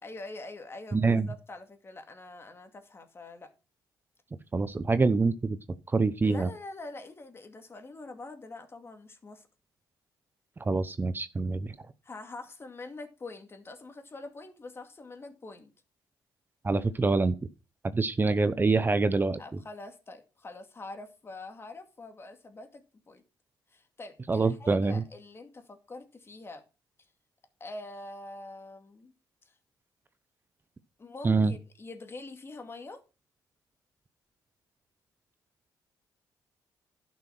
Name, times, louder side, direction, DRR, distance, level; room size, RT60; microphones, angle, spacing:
voice 1, 0.0-3.5 6.2-9.5 12.0-15.7 19.4-23.2 23.7-26.6 27.6-29.1 31.0-33.0, left 2 dB, 30° left, 7 dB, 2.4 m, -45 dB
voice 2, 0.9-1.3 4.5-5.6 5.9-6.5 10.6-11.7 16.6-17.3 17.9-19.4 24.3-25.0 31.2-31.5, right 3 dB, 25° right, 13 dB, 0.8 m, -25 dB
11.5 x 6.3 x 6.0 m, 0.31 s
cardioid pair, 80°, 8 cm